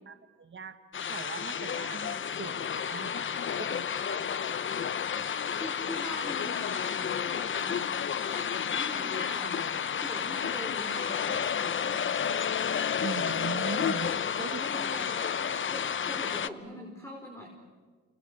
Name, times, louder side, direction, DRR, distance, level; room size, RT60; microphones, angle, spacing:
voice 1, 0.1-0.8 1.1-4.5 13.0-14.1 14.4-14.6, right 6 dB, 40° right, 9 dB, 2.0 m, -40 dB
sound 1, 0.9-16.5, left 7 dB, 40° left, 0.9 m, -31 dB
voice 2, 5.6-7.9 8.3-12.0 14.5-17.5, equal, 10° left, 0 dB, 5.3 m, -43 dB
29.5 x 29.0 x 6.6 m, 1.5 s
cardioid pair, 90°, 30 cm